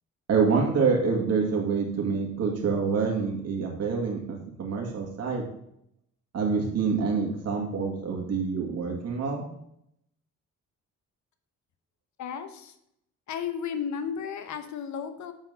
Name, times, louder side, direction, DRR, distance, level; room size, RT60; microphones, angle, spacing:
voice 1, 0.3-5.4 6.3-9.5, right 5 dB, 55° right, 0 dB, 2.3 m, -26 dB
voice 2, 12.2-12.7 13.3-15.3, left 7 dB, 70° left, 9 dB, 1.0 m, -33 dB
7.5 x 4.7 x 5.7 m, 0.76 s
cardioid pair, 90°, 30 cm